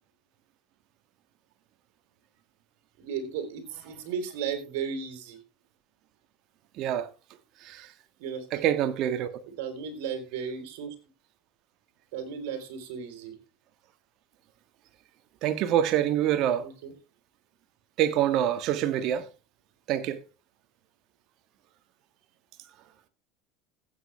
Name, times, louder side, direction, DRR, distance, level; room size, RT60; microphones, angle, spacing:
voice 1, 3.0-5.4 8.2-8.6 9.6-11.0 12.1-13.4 16.6-16.9, right 6 dB, 75° right, 3.9 m, -35 dB
voice 2, 6.8-7.1 7.6-7.9 8.5-9.4 15.4-16.7 18.0-19.2 19.9-20.2, right 11 dB, 55° right, 1.5 m, -26 dB
15.0 x 8.7 x 3.3 m
supercardioid pair, 105°, 0 cm